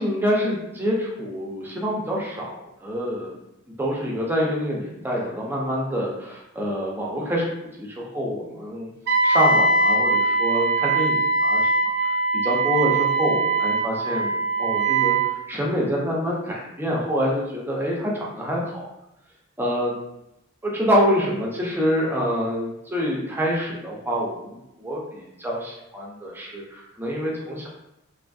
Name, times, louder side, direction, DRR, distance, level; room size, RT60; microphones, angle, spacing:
voice 1, 0.0-3.3 3.8-7.5 7.8-8.9 9.2-11.9 12.3-14.3 14.6-15.2 15.5-18.8 19.6-19.9 20.6-27.7, equal, 10° right, -3 dB, 0.5 m, -26 dB
Wind instrument woodwind instrument, 9.1-15.3, right 3 dB, 60° right, 0.5 m, -21 dB
2.9 x 2.5 x 2.3 m, 0.86 s
head